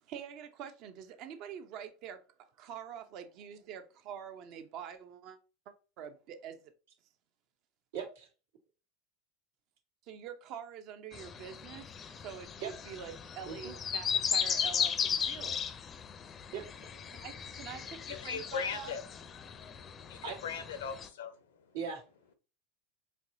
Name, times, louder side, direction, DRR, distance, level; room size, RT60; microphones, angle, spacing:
voice 1, 0.0-2.2 2.6-5.4 5.7-6.7 10.1-15.6 17.1-18.9, right 8 dB, 55° right, 9 dB, 0.7 m, -46 dB
voice 2, 7.9-8.3 12.6-12.7 13.5-13.7 16.5-16.9 20.2-20.4 21.7-22.0, right 6 dB, 80° right, 1 dB, 1.5 m, -39 dB
sound 1, 11.1-21.1, left 7 dB, 35° left, 0.5 m, -36 dB
voice 3, 18.0-19.0 19.4-21.7, left 6 dB, 80° left, 11 dB, 0.6 m, -40 dB
4.6 x 3.0 x 2.7 m, 0.34 s
hypercardioid pair, 90°, 0 cm